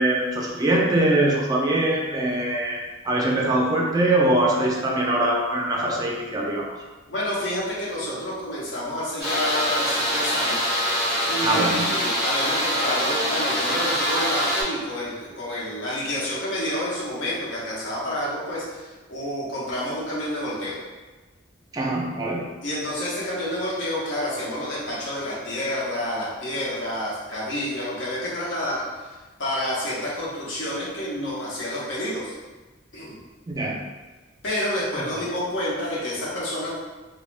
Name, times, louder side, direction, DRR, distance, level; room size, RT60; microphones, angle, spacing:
voice 1, 0.0-2.8 3.0-6.7 11.4-11.9 21.7-22.4 33.5-33.8, right 1 dB, 20° right, -2 dB, 0.3 m, -22 dB
voice 2, 7.1-10.7 11.3-20.8 22.6-32.3 32.9-33.2 34.4-36.8, left 1 dB, 75° left, -6 dB, 0.8 m, -29 dB
sound 1, 9.2-14.6, equal, ahead, 1.4 m, -24 dB
3.2 x 2.1 x 2.4 m, 1.2 s
head